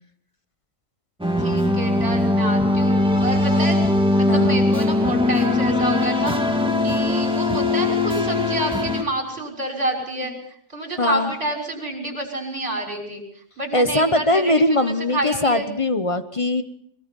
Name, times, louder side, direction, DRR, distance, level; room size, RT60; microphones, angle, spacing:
sound 1, 1.2-9.0, left 2 dB, 5° right, 2.3 m, -20 dB
voice 1, 1.4-3.8 4.1-10.3 10.7-15.7, right 2 dB, 35° right, 1 dB, 6.2 m, -28 dB
voice 2, 4.3-4.6 11.0-11.3 13.7-16.6, left 1 dB, 25° left, 10 dB, 0.9 m, -21 dB
23.0 x 22.0 x 5.5 m, 0.64 s
omnidirectional pair, 1.7 m